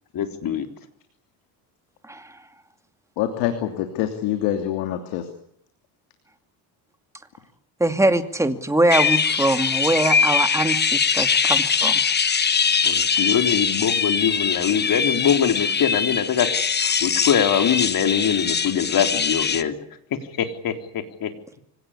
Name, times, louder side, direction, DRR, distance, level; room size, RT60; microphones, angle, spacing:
voice 1, 0.1-0.7 12.8-16.5 16.8-19.8 20.4-20.7 21.2-21.3, left 8 dB, 50° left, 6 dB, 3.8 m, -22 dB
voice 2, 2.0-2.5 7.8-12.0, right 1 dB, 5° right, 8 dB, 2.4 m, -22 dB
voice 3, 3.2-5.3, left 11 dB, 80° left, 6 dB, 3.1 m, -25 dB
sound 1, 8.9-19.6, left 6 dB, 25° left, 1.1 m, -22 dB
25.0 x 18.0 x 9.9 m, 0.70 s
supercardioid pair, 95°, 43 cm